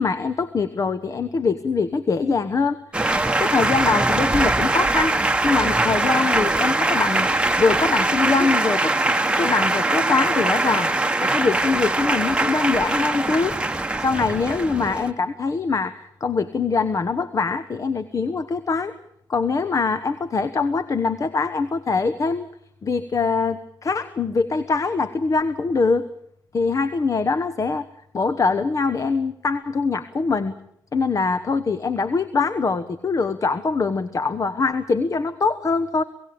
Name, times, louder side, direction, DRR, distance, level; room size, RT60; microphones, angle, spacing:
voice 1, 0.0-2.8 3.4-5.1 5.4-7.3 7.6-9.0 9.4-10.9 11.2-13.5 14.0-18.9 19.3-22.5 22.8-26.1 26.5-27.9 28.1-30.5 30.9-36.0, left 4 dB, 45° left, 12 dB, 1.2 m, -23 dB
Male speech man speaking, 2.9-15.1, right 2 dB, 15° right, 1.1 m, -22 dB
27.5 x 16.5 x 8.7 m, 0.72 s
supercardioid pair, 55°, 8 cm